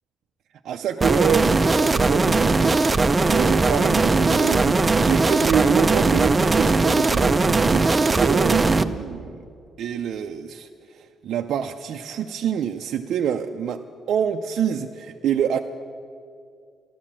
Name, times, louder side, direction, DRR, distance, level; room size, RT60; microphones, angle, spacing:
voice 1, 0.6-9.4 9.8-10.7 10.9-15.6, right 8 dB, 70° right, 4 dB, 0.5 m, -26 dB
sound 1, 1.0-8.8, right 3 dB, 25° right, 0.6 m, -19 dB
13.5 x 11.5 x 7.4 m, 2.3 s
cardioid pair, 90°, 0 cm